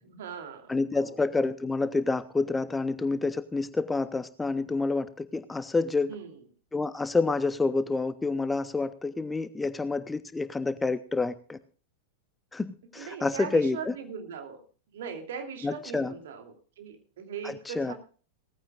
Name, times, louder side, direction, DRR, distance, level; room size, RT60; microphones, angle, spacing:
voice 1, 0.0-1.2 6.0-6.5 12.9-14.6 14.9-17.9, right 6 dB, 60° right, 5 dB, 2.9 m, -40 dB
voice 2, 0.7-6.2 6.7-11.6 12.5-13.9 15.6-16.1 17.4-17.9, left 3 dB, 10° left, 15 dB, 0.7 m, -28 dB
19.0 x 14.5 x 2.4 m, 0.38 s
figure-of-eight pair, 90°, 0 cm